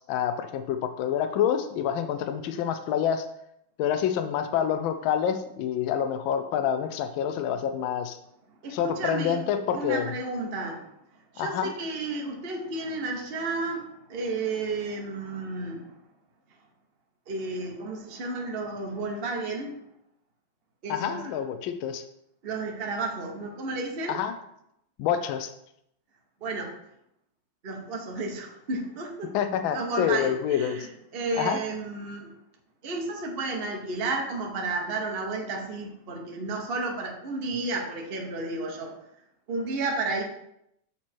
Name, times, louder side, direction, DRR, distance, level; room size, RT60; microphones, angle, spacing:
voice 1, 0.0-3.2 3.8-8.2 8.7-10.1 11.4-11.7 20.9-22.0 24.1-24.3 25.0-25.5 29.3-30.9 31.4-31.6, left 9 dB, 80° left, 8 dB, 1.3 m, -27 dB
voice 2, 8.6-10.9 11.3-15.9 17.3-19.8 20.8-21.4 22.4-24.2 26.4-26.7 27.6-29.3 29.7-32.3 32.8-38.9 39.5-40.2, right 3 dB, 35° right, 1 dB, 1.1 m, -32 dB
7.3 x 4.4 x 4.5 m, 0.77 s
omnidirectional pair, 2.2 m